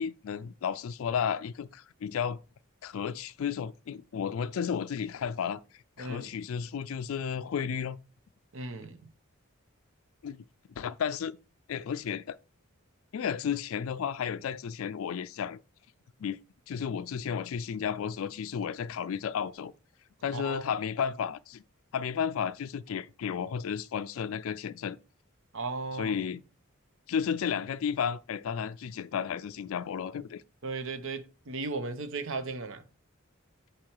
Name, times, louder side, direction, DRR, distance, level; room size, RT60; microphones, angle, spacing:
voice 1, 0.0-2.4 2.8-8.0 10.2-10.4 10.8-11.4 11.7-12.4 13.1-15.6 16.2-16.4 16.7-19.7 20.2-21.6 21.9-25.0 25.9-26.4 27.1-30.4, left 7 dB, 70° left, 0.4 m, -33 dB
voice 2, 6.0-6.3 8.5-9.1 20.3-20.6 25.5-26.2 30.6-32.8, right 3 dB, 70° right, 0.9 m, -36 dB
7.6 x 4.6 x 4.6 m
head